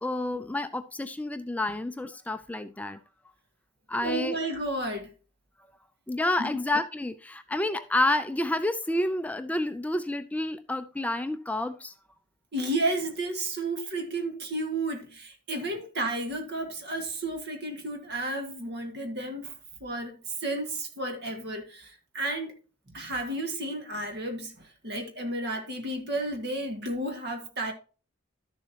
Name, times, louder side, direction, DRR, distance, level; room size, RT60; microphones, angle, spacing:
voice 1, 0.0-3.0 3.9-4.4 6.1-11.9, left 1 dB, 5° left, 0.4 m, -29 dB
voice 2, 4.0-5.1 6.4-6.6 12.5-19.5 19.8-22.6 22.9-27.7, right 2 dB, 55° right, 1.8 m, -32 dB
12.0 x 7.0 x 2.8 m
head